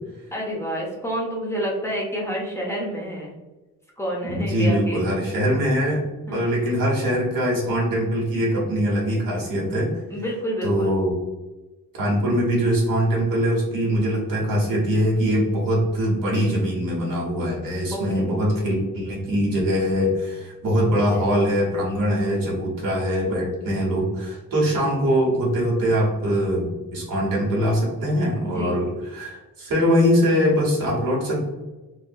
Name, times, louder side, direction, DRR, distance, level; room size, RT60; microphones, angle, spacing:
voice 1, 0.3-3.3 4.0-5.1 6.3-6.8 10.1-11.0 17.9-18.3 20.9-21.3 28.4-28.8, equal, 10° left, -3 dB, 0.6 m, -29 dB
voice 2, 4.2-6.0 6.3-9.9 10.6-11.1 11.9-31.4, equal, 90° right, -4 dB, 1.3 m, -22 dB
3.7 x 2.1 x 2.6 m, 1.1 s
wide cardioid pair, 150°, 33 cm